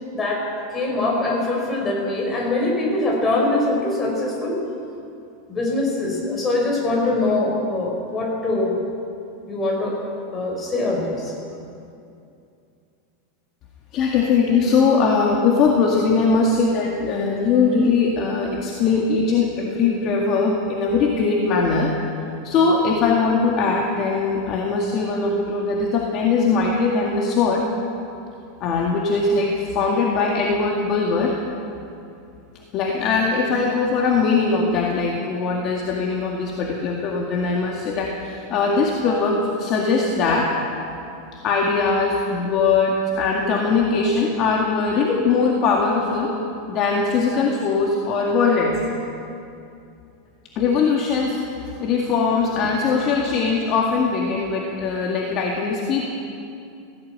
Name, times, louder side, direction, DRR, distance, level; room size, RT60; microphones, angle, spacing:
voice 1, 0.1-4.6 5.5-8.8 9.5-10.0 10.3-11.3, left 2 dB, 15° left, -1 dB, 4.7 m, -23 dB
voice 2, 13.9-21.9 22.4-27.6 28.6-31.4 32.7-40.5 41.4-46.3 46.7-48.8 50.6-51.4 51.6-56.1, left 4 dB, 35° left, -1 dB, 2.0 m, -21 dB
17.5 x 17.0 x 8.9 m, 2.6 s
supercardioid pair, 165°, 0 cm